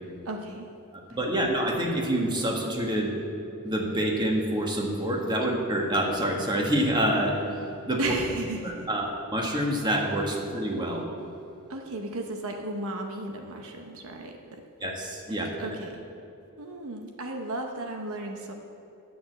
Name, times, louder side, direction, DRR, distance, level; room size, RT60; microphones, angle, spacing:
voice 1, 0.2-0.7 1.1-1.2 8.0-8.9 11.7-14.6 15.3-16.0 16.6-18.5, right 2 dB, 65° right, 3 dB, 0.8 m, -35 dB
voice 2, 1.1-3.1 3.6-7.3 7.9-8.0 8.6-11.0 14.8-15.5, right 1 dB, 20° right, 0 dB, 1.4 m, -27 dB
10.0 x 6.3 x 7.9 m, 2.8 s
head